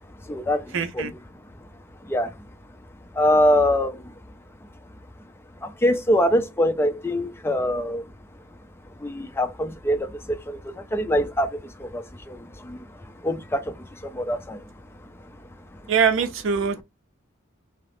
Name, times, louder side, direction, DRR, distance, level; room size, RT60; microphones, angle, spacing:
voice 1, 0.2-1.2 2.0-2.4 3.1-4.1 5.6-8.1 9.0-14.7 15.2-15.4, equal, 10° left, 0.4 m, -24 dB
voice 2, 0.7-1.1 15.9-16.8, right 6 dB, 65° right, 0.5 m, -22 dB
2.8 x 2.0 x 3.0 m
head